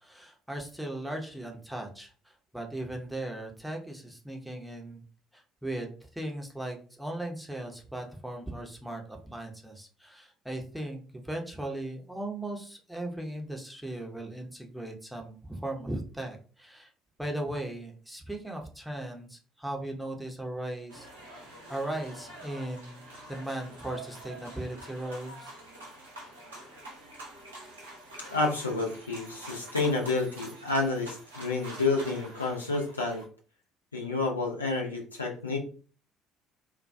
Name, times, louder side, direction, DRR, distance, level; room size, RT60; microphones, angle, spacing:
voice 1, 0.0-5.0 5.3-16.9 17.2-25.5, right 1 dB, 5° right, 1 dB, 0.7 m, -38 dB
sound 1, 20.9-33.2, right 1 dB, 85° right, 0.7 m, -46 dB
voice 2, 28.3-33.2 33.9-35.6, left 3 dB, 85° left, -1 dB, 0.4 m, -29 dB
2.3 x 2.2 x 2.5 m, 0.39 s
figure-of-eight pair, 55°, 0 cm